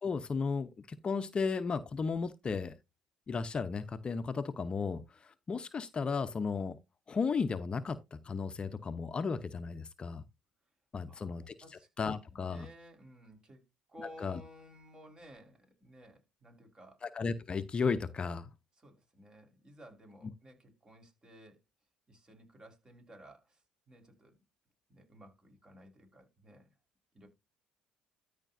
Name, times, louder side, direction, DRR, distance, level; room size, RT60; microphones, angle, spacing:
voice 1, 0.0-2.7 3.3-6.8 7.1-10.2 10.9-11.5 12.0-12.7 14.2-14.4 17.0-18.5, left 5 dB, 35° left, 0.8 m, -34 dB
voice 2, 11.0-11.9 12.3-17.0 18.8-21.6 22.1-24.4 24.9-26.7 27.1-27.3, equal, 30° right, 4.7 m, -56 dB
13.5 x 5.1 x 2.7 m
supercardioid pair, 70°, 3 cm